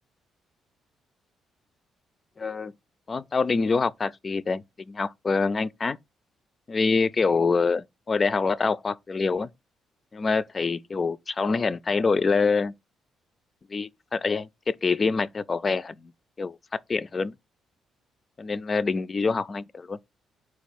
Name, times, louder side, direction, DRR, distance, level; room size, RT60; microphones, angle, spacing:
voice 1, 2.4-2.7 3.1-6.0 6.7-9.5 10.1-12.7 13.7-16.1 16.4-16.6 16.9-17.3 18.4-20.0, left 4 dB, 35° left, 0.3 m, -25 dB
4.4 x 2.3 x 4.1 m
cardioid pair, 90°, 0 cm